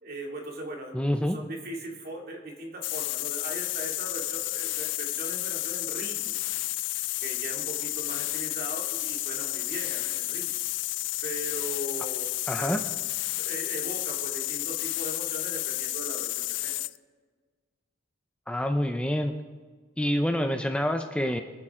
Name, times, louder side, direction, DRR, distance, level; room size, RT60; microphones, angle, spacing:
voice 1, 0.0-6.3 7.2-10.6 11.2-12.3 12.6-12.8 13.4-16.7, right 1 dB, 50° right, 0 dB, 2.7 m, -39 dB
voice 2, 0.9-1.4 12.5-12.8 18.5-19.3 20.0-21.4, equal, 5° left, 5 dB, 0.6 m, -27 dB
sound 1, 2.8-17.0, left 18 dB, 65° left, 0.3 m, -31 dB
25.0 x 9.4 x 3.8 m, 1.4 s
head